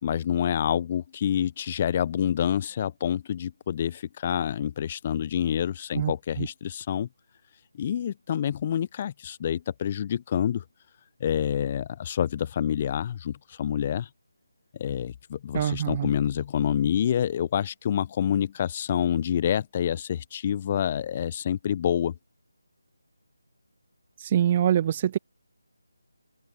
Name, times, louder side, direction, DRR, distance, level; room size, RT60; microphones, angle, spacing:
voice 1, 0.0-7.1 7.8-10.6 11.2-14.1 14.7-22.1, left 9 dB, 25° left, 1.1 m, -27 dB
voice 2, 15.5-16.1 24.2-25.2, right 10 dB, 25° right, 0.3 m, -24 dB
open air
figure-of-eight pair, 155°, 0 cm